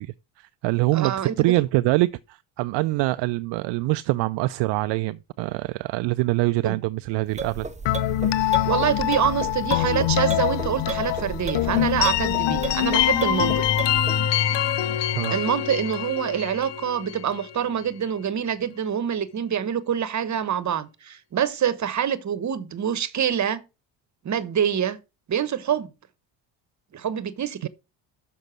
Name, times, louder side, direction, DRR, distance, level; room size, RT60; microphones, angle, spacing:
voice 1, 0.0-7.7 15.2-15.4 27.6-27.7, right 20 dB, 65° right, 0.5 m, -24 dB
voice 2, 0.9-1.5 6.6-6.8 8.7-13.6 15.3-23.6 24.2-25.0 25.3-25.9 26.9-27.7, right 9 dB, 40° right, 1.1 m, -26 dB
sound 1, 7.3-14.2, right 4 dB, 15° right, 1.0 m, -34 dB
sound 2, 7.9-17.6, left 12 dB, 65° left, 0.9 m, -24 dB
6.6 x 5.4 x 6.0 m
supercardioid pair, 80°, 46 cm